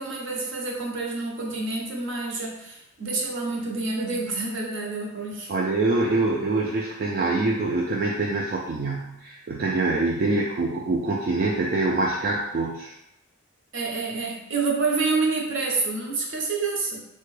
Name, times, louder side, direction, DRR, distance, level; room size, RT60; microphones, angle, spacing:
voice 1, 0.0-5.5 13.7-17.0, right 3 dB, 60° right, -1 dB, 0.7 m, -28 dB
voice 2, 5.5-12.9, right 2 dB, 45° right, -2 dB, 0.3 m, -25 dB
3.4 x 2.2 x 3.1 m, 0.84 s
head